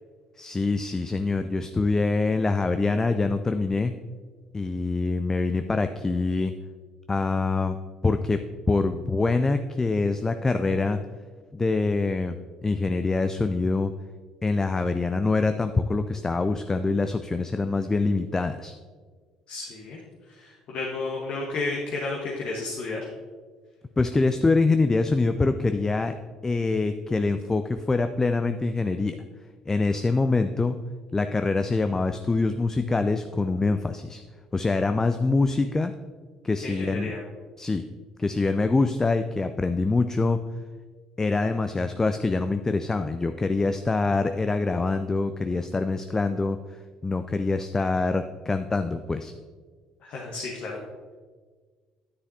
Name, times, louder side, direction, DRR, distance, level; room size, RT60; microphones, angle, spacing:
voice 1, 0.4-3.9 4.5-6.5 7.1-7.8 8.0-8.4 8.7-11.0 11.5-13.9 14.4-18.7 24.0-26.1 26.4-29.2 29.7-30.8 31.1-34.2 34.5-35.9 36.4-37.1 37.6-37.8 38.2-40.4 41.2-46.6 47.0-49.3, left 3 dB, 20° left, 9 dB, 0.4 m, -25 dB
voice 2, 19.5-20.0 20.3-23.0 36.6-37.2 50.0-50.8, left 3 dB, 50° left, -3 dB, 1.3 m, -32 dB
9.6 x 9.3 x 2.8 m, 1.5 s
figure-of-eight pair, 50°, 3 cm